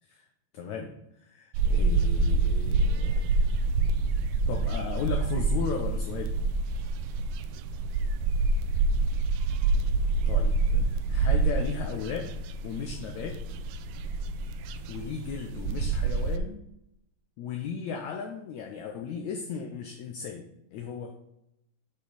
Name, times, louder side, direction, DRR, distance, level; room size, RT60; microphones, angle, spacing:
voice 1, 0.5-0.9 1.2-3.5 4.5-6.4 10.3-12.3 12.6-13.4 14.9-16.6 17.4-21.2, left 6 dB, 80° left, 3 dB, 1.7 m, -36 dB
sound 1, 1.5-16.4, right 3 dB, 85° right, 2.3 m, -27 dB
8.1 x 4.5 x 5.2 m, 0.80 s
omnidirectional pair, 4.1 m